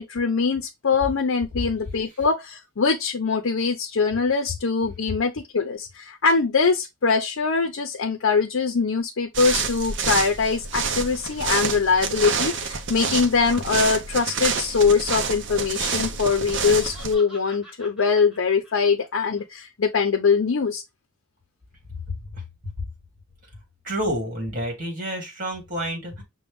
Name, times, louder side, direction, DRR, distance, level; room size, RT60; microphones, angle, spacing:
voice 1, 0.0-20.8, left 5 dB, 70° left, 0.6 m, -22 dB
sound 1, 9.3-17.1, right 5 dB, 60° right, 0.7 m, -28 dB
Laughter, 16.3-19.4, equal, 5° right, 1.6 m, -47 dB
voice 2, 23.8-26.2, equal, 40° right, 2.1 m, -29 dB
5.9 x 2.2 x 3.5 m
head